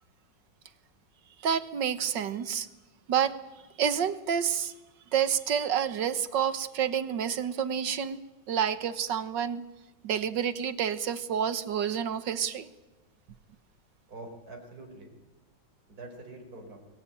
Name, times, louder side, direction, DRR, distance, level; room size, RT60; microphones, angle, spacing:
voice 1, 1.4-2.7 3.1-3.4 3.8-4.7 5.1-8.2 8.5-9.7 10.0-12.7, right 8 dB, 70° right, 13 dB, 1.9 m, -29 dB
voice 2, 14.1-15.1 15.9-16.9, right 2 dB, 50° right, 1 dB, 5.0 m, -45 dB
29.0 x 21.5 x 9.0 m, 1.1 s
omnidirectional pair, 2.1 m